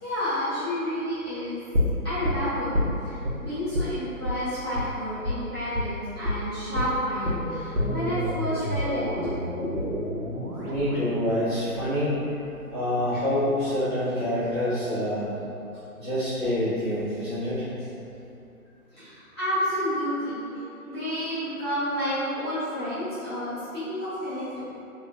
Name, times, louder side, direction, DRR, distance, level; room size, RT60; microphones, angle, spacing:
voice 1, 0.0-1.6 2.0-9.4 9.6-9.9 10.4-10.6 18.9-24.6, equal, 15° left, -17 dB, 1.1 m, -30 dB
sound 1, 1.7-3.4 3.7-3.9 4.2-4.4 4.7-4.9 5.2-5.4 5.7-5.9 6.2-6.4 6.7-12.7 13.0-13.1, left 1 dB, 85° right, 0.9 m, -29 dB
voice 2, 10.6-12.4 12.7-15.3 15.9-17.7, left 1 dB, 20° right, -18 dB, 1.0 m, -26 dB
3.4 x 3.3 x 2.5 m, 2.8 s
figure-of-eight pair, 145°, 45 cm